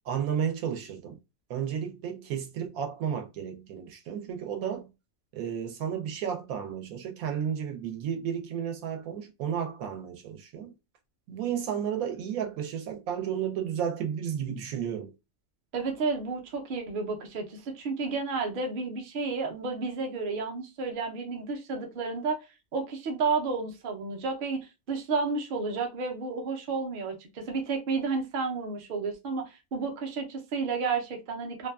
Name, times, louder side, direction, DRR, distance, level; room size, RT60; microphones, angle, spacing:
voice 1, 0.1-1.2 1.5-4.9 5.3-10.7 11.3-15.1, right 8 dB, 85° right, 1.1 m, -32 dB
voice 2, 15.7-22.4 22.7-24.6 24.9-31.7, right 4 dB, 55° right, 0.6 m, -31 dB
2.6 x 2.3 x 2.2 m
omnidirectional pair, 1.5 m